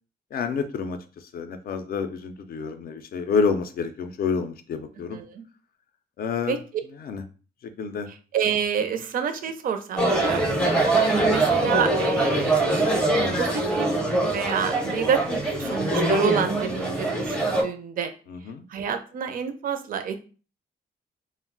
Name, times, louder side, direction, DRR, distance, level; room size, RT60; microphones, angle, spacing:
voice 1, 0.3-1.0 1.3-5.2 6.2-6.6 7.0-7.2 7.8-8.1 11.0-11.3 18.3-18.6, left 5 dB, 60° left, 9 dB, 0.4 m, -28 dB
voice 2, 5.1-5.4 6.5-6.6 8.3-10.7 11.3-12.8 13.4-13.9 14.2-18.1 18.7-20.2, right 7 dB, 55° right, 8 dB, 0.4 m, -28 dB
sound 1, 10.0-17.6, right 2 dB, 5° left, 0.5 m, -23 dB
2.2 x 2.0 x 3.7 m, 0.36 s
wide cardioid pair, 145°, 18 cm